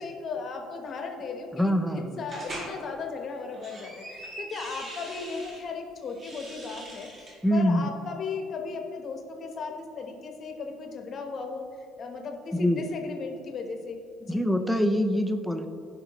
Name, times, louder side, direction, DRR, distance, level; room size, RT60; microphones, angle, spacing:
voice 1, 0.0-14.4, left 4 dB, 30° left, 3 dB, 1.0 m, -36 dB
voice 2, 1.5-2.1 7.4-7.9 12.5-12.8 14.3-15.7, equal, ahead, 7 dB, 0.5 m, -24 dB
sound 1, 2.3-2.7 3.4-5.6 6.1-7.4, right 1 dB, 30° right, 1.9 m, -41 dB
15.0 x 5.5 x 3.0 m, 2.3 s
cardioid pair, 165°, 0 cm